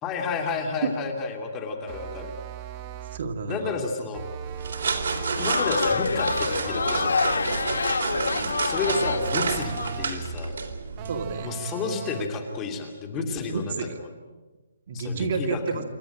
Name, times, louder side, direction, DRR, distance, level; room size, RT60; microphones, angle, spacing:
voice 1, 0.0-2.3 3.5-4.2 5.4-7.1 8.6-10.6 11.4-14.1 14.9-15.8, left 4 dB, 15° left, 3 dB, 2.6 m, -31 dB
sound 1, 1.9-3.3 4.1-5.6 6.6-8.0 8.8-10.3 11.0-12.4, right 7 dB, 25° right, 1.0 m, -38 dB
voice 2, 3.1-3.8 8.1-8.6 11.1-11.7 13.2-13.9 14.9-15.8, right 5 dB, 45° right, 5 dB, 2.2 m, -31 dB
sound 2, 4.5-11.3, right 4 dB, 60° right, 3.7 m, -30 dB
Crowd, 5.1-9.9, left 5 dB, 90° left, 1.4 m, -27 dB
27.5 x 12.5 x 10.0 m, 1.2 s
hypercardioid pair, 165°, 0 cm